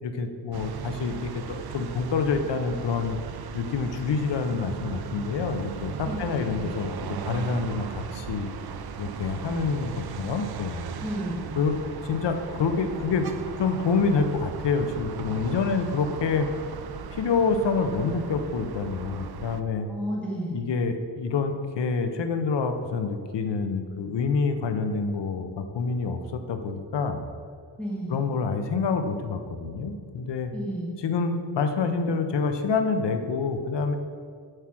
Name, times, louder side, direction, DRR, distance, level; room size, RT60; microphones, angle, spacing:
voice 1, 0.0-3.2 3.5-8.5 9.0-10.8 11.6-11.8 12.0-13.3 13.6-16.5 17.1-19.9 20.5-27.2 28.1-30.5 31.0-33.9, left 4 dB, 75° left, 7 dB, 0.8 m, -27 dB
sound 1, 0.5-19.6, right 7 dB, 60° right, 0.5 m, -37 dB
voice 2, 6.0-6.6 11.0-11.5 19.9-20.6 27.8-28.2 30.5-31.0, equal, 5° left, -4 dB, 1.8 m, -32 dB
7.8 x 4.9 x 6.0 m, 2.1 s
wide cardioid pair, 135°, 43 cm